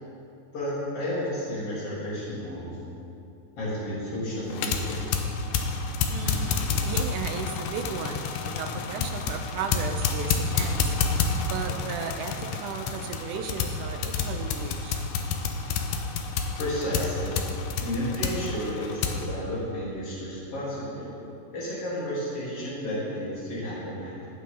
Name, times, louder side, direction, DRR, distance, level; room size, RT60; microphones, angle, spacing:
voice 1, 0.5-2.8 3.6-5.0 16.6-17.4 17.8-21.1 21.5-24.3, left 1 dB, 40° left, -9 dB, 4.2 m, -32 dB
sound 1, 4.5-19.2, left 5 dB, 75° left, 2.2 m, -29 dB
voice 2, 6.1-10.9 11.4-15.1, right 6 dB, 75° right, 5 dB, 1.9 m, -35 dB
16.5 x 9.0 x 3.8 m, 2.7 s
omnidirectional pair, 4.1 m